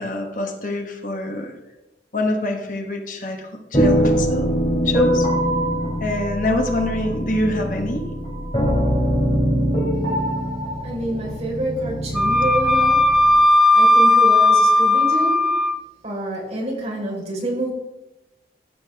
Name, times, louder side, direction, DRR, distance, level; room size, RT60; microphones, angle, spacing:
voice 1, 0.0-1.5 2.1-4.5 4.8-5.3 6.0-8.1, left 1 dB, 50° left, 3 dB, 1.2 m, -25 dB
sound 1, 3.7-13.3, equal, 30° left, 2.9 m, -22 dB
voice 2, 10.8-13.1 13.7-15.4 16.0-17.7, right 1 dB, 40° right, -3 dB, 4.0 m, -27 dB
Wind instrument woodwind instrument, 12.1-15.8, left 1 dB, ahead, 0.4 m, -15 dB
14.0 x 7.6 x 3.5 m, 0.97 s
head